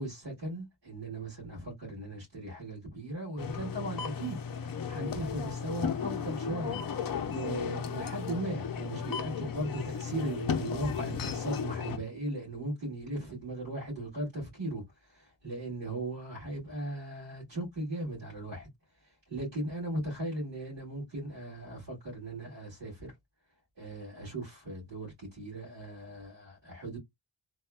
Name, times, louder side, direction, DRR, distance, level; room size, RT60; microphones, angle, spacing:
voice 1, 0.0-6.8 7.3-18.7 19.0-23.1 23.8-27.0, right 1 dB, 60° right, 2.0 m, -38 dB
sound 1, 3.4-12.0, left 6 dB, 50° left, 0.5 m, -35 dB
3.4 x 2.2 x 2.2 m
wide cardioid pair, 140°, 47 cm